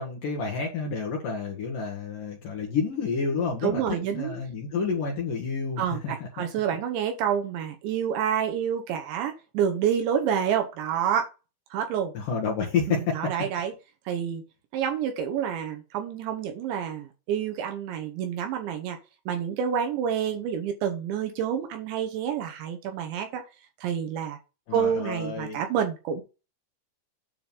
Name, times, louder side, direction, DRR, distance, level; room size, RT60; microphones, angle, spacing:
voice 1, 0.0-6.4 12.1-13.3 24.7-25.6, left 5 dB, 60° left, -1 dB, 2.4 m, -29 dB
voice 2, 3.6-4.3 5.8-11.3 11.7-12.1 12.9-13.7 14.1-14.4 14.7-19.0 19.3-23.4 23.8-24.4 24.7-26.2, right 8 dB, 75° right, 5 dB, 3.0 m, -28 dB
9.6 x 3.9 x 5.4 m, 0.29 s
omnidirectional pair, 5.8 m